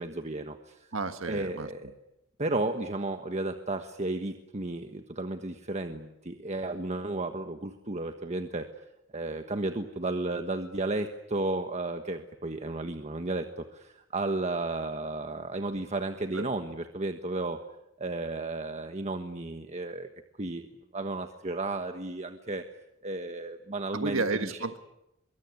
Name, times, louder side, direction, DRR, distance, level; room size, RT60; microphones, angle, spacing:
voice 1, 0.0-0.9 1.3-1.9 2.4-8.7 9.1-17.6 18.0-20.1 20.4-20.7 20.9-22.6 23.0-24.6, right 2 dB, 35° right, 7 dB, 1.4 m, -33 dB
voice 2, 0.9-1.7 16.3-16.5 23.9-24.8, right 3 dB, 90° right, 9 dB, 1.6 m, -31 dB
24.0 x 23.5 x 9.6 m, 0.88 s
head